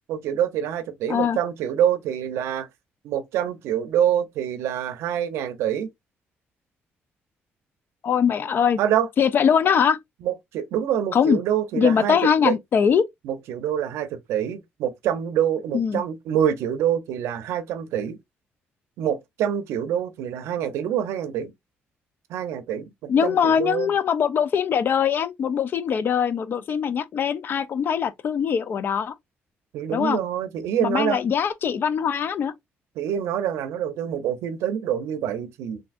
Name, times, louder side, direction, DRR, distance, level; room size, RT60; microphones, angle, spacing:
voice 1, 0.1-2.7 3.0-5.9 8.8-9.1 10.2-12.6 13.2-18.2 19.0-21.5 22.3-23.9 29.7-31.2 33.0-35.8, right 9 dB, 85° right, 0.6 m, -26 dB
voice 2, 8.0-8.8 9.2-10.0 11.1-11.4 11.7-13.1 15.7-16.0 23.1-29.1 29.9-30.2 30.8-32.5, left 7 dB, 50° left, 0.4 m, -22 dB
3.4 x 2.6 x 2.4 m
cardioid pair, 100°, 4 cm